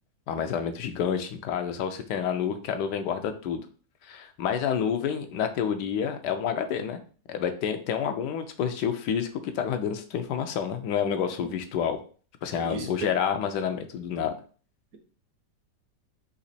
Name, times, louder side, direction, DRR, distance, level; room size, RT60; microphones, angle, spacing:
voice 1, 0.3-3.6 4.0-7.0 7.3-9.3 9.5-12.0 12.4-14.4, left 8 dB, 80° left, 1.2 m, -29 dB
voice 2, 12.5-13.1, right 4 dB, 65° right, 1.1 m, -35 dB
4.0 x 2.9 x 4.1 m
omnidirectional pair, 1.8 m